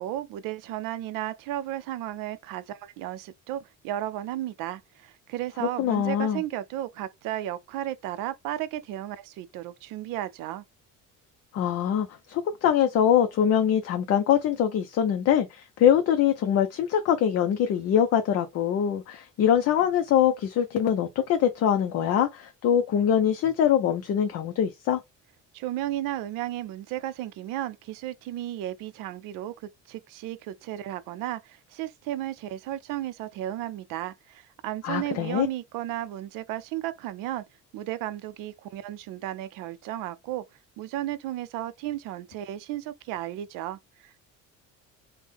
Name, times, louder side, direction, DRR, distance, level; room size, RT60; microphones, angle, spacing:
voice 1, 0.0-10.6 25.5-37.4 37.7-40.4 40.8-44.2, right 13 dB, 85° right, 0.5 m, -34 dB
voice 2, 5.6-6.4 11.5-25.0 34.8-35.5, left 9 dB, 50° left, 0.5 m, -23 dB
3.4 x 2.1 x 3.4 m
cardioid pair, 155°, 32 cm